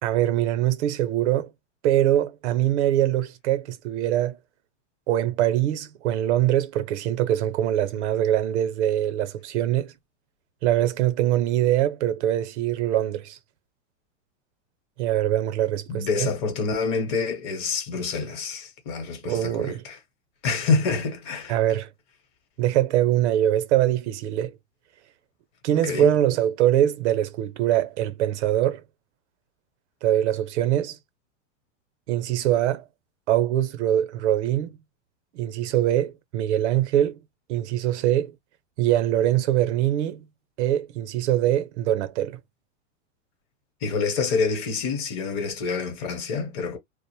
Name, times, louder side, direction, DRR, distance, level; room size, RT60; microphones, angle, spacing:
voice 1, 0.0-1.5 1.8-4.4 5.1-9.9 10.6-13.4 15.0-16.3 19.3-19.8 21.5-21.9 22.6-24.5 25.6-28.8 30.0-31.0 32.1-32.8 33.3-34.8 35.3-37.2 37.5-38.3 38.8-40.3 40.6-42.4, right 12 dB, 65° right, 0.6 m, -23 dB
voice 2, 15.9-20.0 20.4-21.6 25.8-26.1 43.8-46.8, left 4 dB, 40° left, 0.9 m, -27 dB
2.5 x 2.0 x 3.0 m
supercardioid pair, 150°, 37 cm